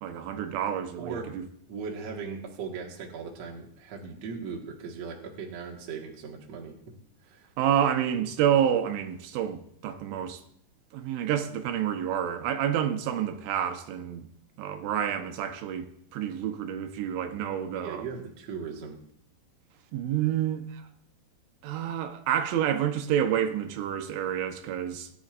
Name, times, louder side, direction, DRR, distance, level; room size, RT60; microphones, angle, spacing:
voice 1, 0.0-1.4 7.6-10.4 10.9-14.3 14.6-18.1 19.9-20.9 21.6-25.2, right 9 dB, 80° right, 3.2 m, -29 dB
voice 2, 1.0-1.3 1.7-6.7 7.3-7.5 17.7-19.0, right 5 dB, 55° right, 1.8 m, -38 dB
19.5 x 11.0 x 2.5 m
omnidirectional pair, 5.4 m